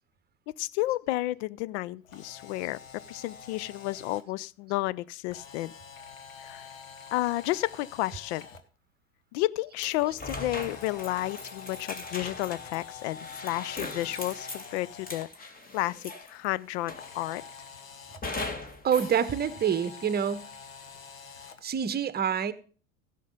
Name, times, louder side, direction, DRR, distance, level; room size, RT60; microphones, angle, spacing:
voice 1, 0.5-5.7 6.4-6.8 7.1-8.5 9.3-17.4, left 17 dB, 60° left, 0.6 m, -32 dB
Camera, 2.0-4.2 5.3-8.6 10.3-15.2 16.9-18.2 18.9-21.6, left 5 dB, 85° left, 1.2 m, -46 dB
sound 1, 9.8-16.4 16.9-17.5 18.2-19.2, left 2 dB, 20° left, 2.1 m, -40 dB
voice 2, 18.8-20.5 21.6-22.5, right 8 dB, 25° right, 1.0 m, -27 dB
15.5 x 6.6 x 5.1 m
figure-of-eight pair, 70°, 39 cm